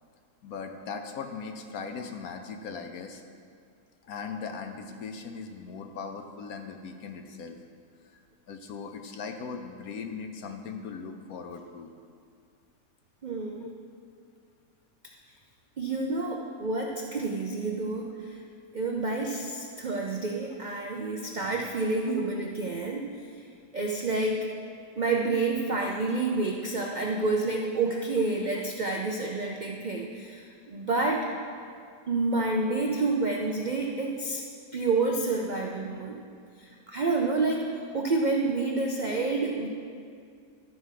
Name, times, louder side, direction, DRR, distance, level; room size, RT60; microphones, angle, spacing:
voice 1, 0.4-3.2 4.0-7.6 8.1-8.2 8.5-11.9 13.6-13.7, left 5 dB, 65° left, 5 dB, 1.1 m, -39 dB
voice 2, 13.2-13.7 15.8-18.4 18.7-23.4 23.7-24.5 25.0-31.3 32.1-34.4 34.7-36.2 36.6-39.7, right 3 dB, 70° right, 0 dB, 0.4 m, -29 dB
12.0 x 4.7 x 5.7 m, 2.3 s
omnidirectional pair, 1.8 m